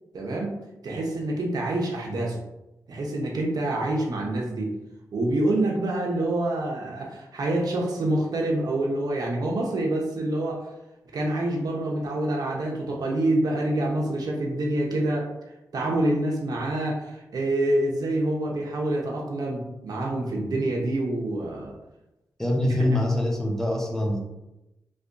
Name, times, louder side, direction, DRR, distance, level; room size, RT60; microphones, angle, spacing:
voice 1, 0.1-0.5 0.8-2.4 2.9-4.7 5.1-10.7 11.1-15.3 15.7-21.7 22.7-22.8, right 1 dB, 65° right, -2 dB, 0.9 m, -26 dB
voice 2, 22.4-24.2, left 1 dB, 5° left, 0 dB, 0.7 m, -24 dB
3.3 x 3.3 x 2.6 m, 0.94 s
wide cardioid pair, 110°, 7 cm